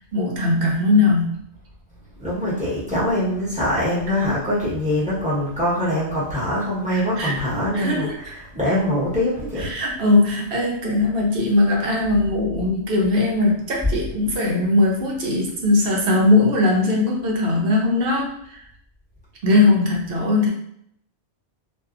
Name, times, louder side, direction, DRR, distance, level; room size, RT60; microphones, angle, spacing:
voice 1, 0.1-1.4 6.9-7.3 7.7-8.2 9.6-18.6 19.4-20.5, left 2 dB, 60° right, -1 dB, 0.7 m, -20 dB
voice 2, 2.2-8.1 8.6-9.7, left 1 dB, 5° right, -9 dB, 0.9 m, -23 dB
2.6 x 2.3 x 2.4 m, 0.70 s
omnidirectional pair, 1.3 m